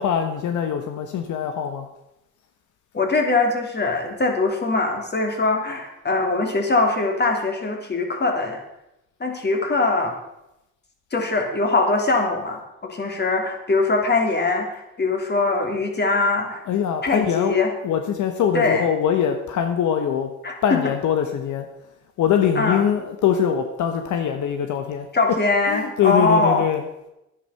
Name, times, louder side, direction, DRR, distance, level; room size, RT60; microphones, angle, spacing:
voice 1, 0.0-1.9 16.7-20.3 20.6-21.7 22.2-25.1 25.7-26.8, left 8 dB, 75° left, 6 dB, 1.2 m, -23 dB
voice 2, 2.9-8.6 9.2-10.2 11.1-16.6 17.0-17.7 18.5-18.8 20.4-20.8 22.6-22.8 25.1-26.6, left 3 dB, 35° left, 3 dB, 3.0 m, -22 dB
11.0 x 10.0 x 5.7 m, 0.88 s
cardioid pair, 90°, 30 cm